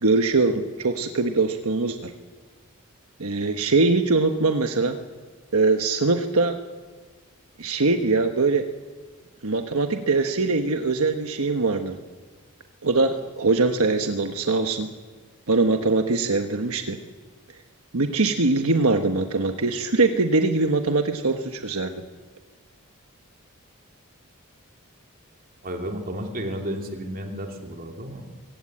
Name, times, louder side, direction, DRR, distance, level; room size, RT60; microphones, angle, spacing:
voice 1, 0.0-2.1 3.2-5.0 5.5-6.5 7.6-8.7 9.4-12.0 12.8-14.9 15.5-17.0 17.9-22.0, right 3 dB, 75° right, 6 dB, 1.3 m, -22 dB
voice 2, 25.6-28.3, equal, 40° right, 3 dB, 2.9 m, -32 dB
23.0 x 16.5 x 8.8 m, 1.4 s
head